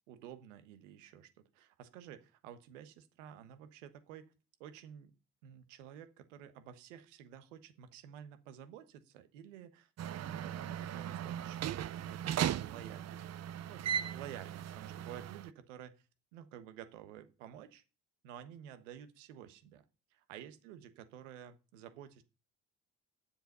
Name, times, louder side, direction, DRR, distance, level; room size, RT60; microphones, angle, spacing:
voice 1, 0.1-4.3 4.6-5.1 5.4-16.1 16.3-17.8 18.2-19.8 20.1-22.2, right 10 dB, 85° right, 11 dB, 1.4 m, -52 dB
sound 1, 10.0-15.5, right 10 dB, 45° right, 0.6 m, -38 dB
10.0 x 7.5 x 5.5 m, 0.31 s
hypercardioid pair, 55°, 36 cm